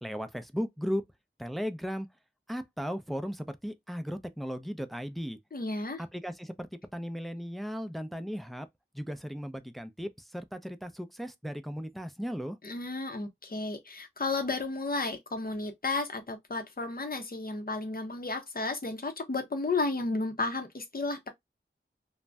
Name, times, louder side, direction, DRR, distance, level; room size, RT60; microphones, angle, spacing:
voice 1, 0.0-1.0 1.4-2.1 2.5-5.4 6.0-6.7 6.9-8.7 8.9-12.6, equal, ahead, 0.4 m, -36 dB
voice 2, 5.5-6.0 12.6-21.3, left 3 dB, 45° left, 0.7 m, -33 dB
2.5 x 2.1 x 3.3 m
wide cardioid pair, 40°, 21 cm